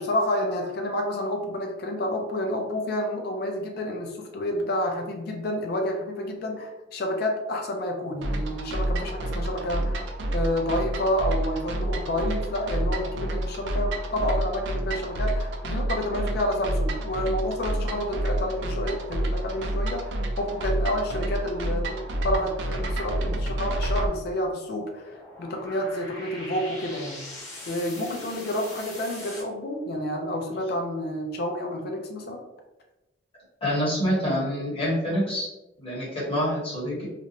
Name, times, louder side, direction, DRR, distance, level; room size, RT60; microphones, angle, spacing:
voice 1, 0.0-10.0 10.3-27.2 27.7-32.4, left 1 dB, 55° left, 2 dB, 0.4 m, -29 dB
sound 1, 8.2-24.1, right 1 dB, 70° right, 0.4 m, -29 dB
sound 2, 24.1-29.4, left 1 dB, 15° left, 0.6 m, -42 dB
voice 2, 33.6-35.5 35.8-37.0, equal, 30° left, -7 dB, 1.1 m, -26 dB
2.5 x 2.1 x 2.8 m, 1.0 s
head